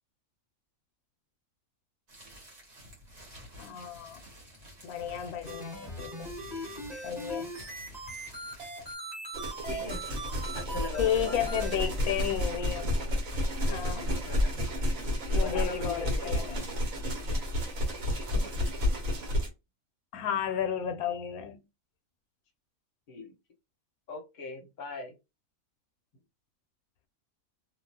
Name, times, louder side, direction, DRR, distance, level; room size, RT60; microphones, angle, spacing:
sound 1, 2.1-8.9, equal, 50° right, 1.4 m, -50 dB
voice 1, 3.6-4.2 4.8-6.3 6.9-7.5 11.0-13.0 13.6-14.0 15.2-16.7 18.3-18.7 20.1-21.6, left 9 dB, 80° left, 1.0 m, -33 dB
sound 2, 5.5-11.7, right 1 dB, 30° right, 1.4 m, -40 dB
sound 3, 9.3-19.5, left 1 dB, 65° right, 1.4 m, -31 dB
voice 2, 9.6-10.0 10.5-11.4 13.6-14.5 15.4-16.5 23.1-23.3 24.1-25.1, left 3 dB, 40° left, 0.8 m, -40 dB
2.8 x 2.4 x 2.8 m
omnidirectional pair, 1.5 m